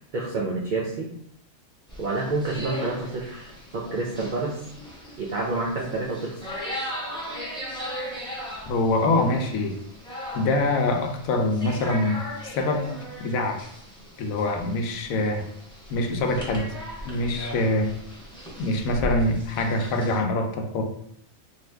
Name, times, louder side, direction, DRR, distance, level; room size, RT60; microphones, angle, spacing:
voice 1, 0.1-1.1 2.0-4.6 5.2-6.5, right 3 dB, 80° right, -2 dB, 0.4 m, -28 dB
sound 1, 1.9-20.2, equal, 5° left, 0.6 m, -38 dB
voice 2, 8.7-9.8 10.3-12.2 12.5-13.7 14.2-15.4 15.9-16.7 17.0-17.9 18.6-20.8, left 2 dB, 85° left, 4 dB, 1.0 m, -24 dB
2.7 x 2.4 x 3.3 m, 0.69 s
omnidirectional pair, 1.4 m